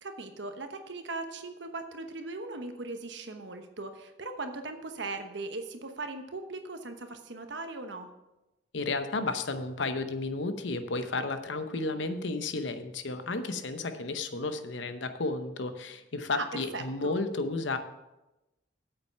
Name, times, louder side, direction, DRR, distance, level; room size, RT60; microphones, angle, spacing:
voice 1, 0.0-8.1 16.3-17.2, right 3 dB, 70° right, 7 dB, 1.0 m, -39 dB
voice 2, 8.7-17.8, left 3 dB, 75° left, 9 dB, 0.8 m, -32 dB
8.7 x 7.7 x 5.6 m, 0.99 s
head